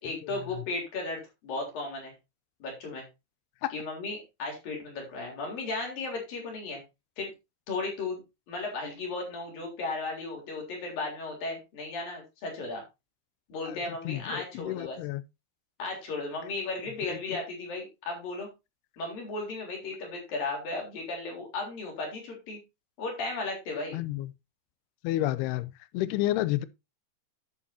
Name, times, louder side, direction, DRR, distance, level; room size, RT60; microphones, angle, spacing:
voice 1, 0.0-2.1 2.6-3.0 3.7-6.8 7.2-7.3 7.7-8.2 8.5-12.8 13.5-15.0 15.8-18.5 19.0-22.6 23.0-24.0, left 3 dB, 60° left, 5.3 m, -35 dB
voice 2, 14.1-15.2 17.1-17.2 23.9-24.3 25.0-26.7, left 15 dB, 85° left, 2.6 m, -30 dB
11.5 x 8.8 x 2.8 m
omnidirectional pair, 4.6 m